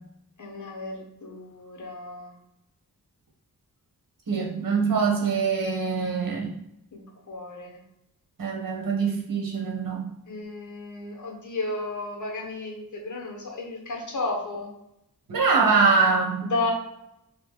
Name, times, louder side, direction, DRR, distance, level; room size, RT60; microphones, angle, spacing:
voice 1, 0.4-2.3 6.9-7.8 10.3-14.7 16.5-16.7, left 2 dB, 55° left, 0 dB, 1.1 m, -33 dB
voice 2, 4.3-6.6 8.4-10.1 15.3-16.4, right 5 dB, 65° right, 0 dB, 1.1 m, -24 dB
3.1 x 3.1 x 3.3 m, 0.83 s
wide cardioid pair, 90°, 36 cm